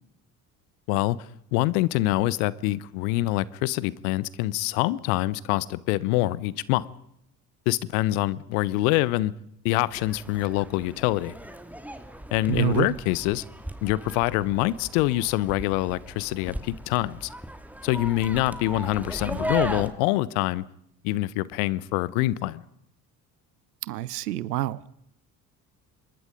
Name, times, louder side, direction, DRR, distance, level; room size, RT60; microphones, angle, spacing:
voice 1, 1.5-6.9 7.7-9.3 9.6-11.3 12.3-13.4 13.8-17.3 17.8-20.6 21.0-22.6, left 17 dB, 70° left, 1.0 m, -25 dB
sound 1, 9.9-19.9, right 1 dB, 5° right, 2.5 m, -37 dB
voice 2, 12.5-12.9 23.8-24.8, right 15 dB, 85° right, 0.8 m, -27 dB
26.0 x 22.0 x 5.2 m
hypercardioid pair, 55°, 46 cm